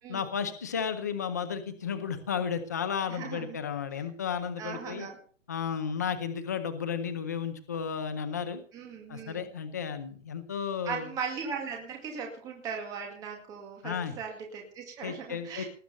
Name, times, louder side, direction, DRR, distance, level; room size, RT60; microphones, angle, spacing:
voice 1, 0.1-5.1 5.5-8.6 9.1-11.1 13.8-14.1 15.0-15.6, left 7 dB, 15° left, 9 dB, 0.6 m, -33 dB
voice 2, 3.1-3.6 3.9-4.0 4.6-5.2 8.7-9.5 10.8-15.7, right 6 dB, 10° right, 1 dB, 2.2 m, -38 dB
19.0 x 7.8 x 6.9 m, 0.42 s
hypercardioid pair, 180°, 38 cm